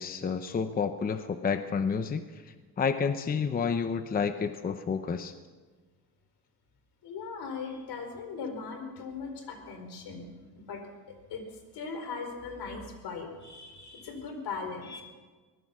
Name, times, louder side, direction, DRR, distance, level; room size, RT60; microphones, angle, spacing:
voice 1, 0.0-2.2 2.8-5.3, left 6 dB, 25° left, 9 dB, 0.7 m, -29 dB
voice 2, 7.0-10.8 11.3-11.5 11.7-15.0, left 4 dB, 80° left, 5 dB, 4.7 m, -39 dB
23.5 x 19.0 x 6.1 m, 1.4 s
cardioid pair, 180°, 39 cm